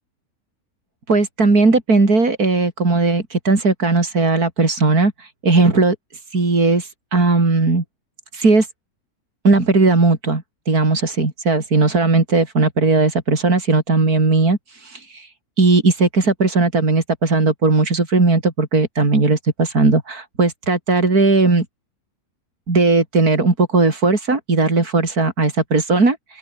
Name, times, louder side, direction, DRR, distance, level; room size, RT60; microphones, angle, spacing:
voice 1, 1.1-6.0 6.3-7.8 8.3-8.7 9.4-15.3 15.6-21.7 22.7-26.4, right 3 dB, 80° right, 4.6 m, -17 dB
open air
omnidirectional pair, 1.6 m